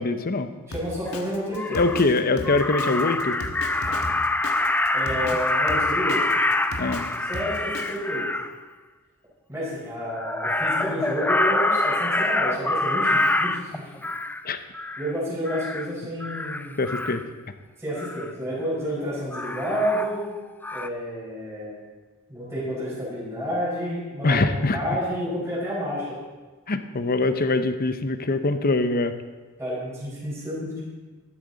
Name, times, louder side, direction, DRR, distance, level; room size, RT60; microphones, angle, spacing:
voice 1, 0.0-0.5 1.7-3.4 6.8-7.0 14.4-14.6 16.8-17.2 24.2-24.8 26.7-29.1, left 3 dB, 45° left, 9 dB, 0.8 m, -23 dB
Drum kit, 0.7-8.0, left 2 dB, 85° left, 1.3 m, -36 dB
voice 2, 0.7-1.8 4.9-6.2 7.3-8.2 9.5-13.8 15.0-16.8 17.8-20.2 20.7-21.8 22.3-24.4 24.7-26.1 29.6-30.8, equal, 15° right, -8 dB, 4.9 m, -30 dB
Crow, 1.1-1.2 1.5-2.1 2.4-8.5 10.1-14.4 14.7-15.1 15.5-15.9 16.2-17.2 18.0-18.3 19.3-20.4 20.6-20.9, left 2 dB, 10° left, 0.4 m, -26 dB
13.0 x 12.0 x 4.0 m, 1.3 s
head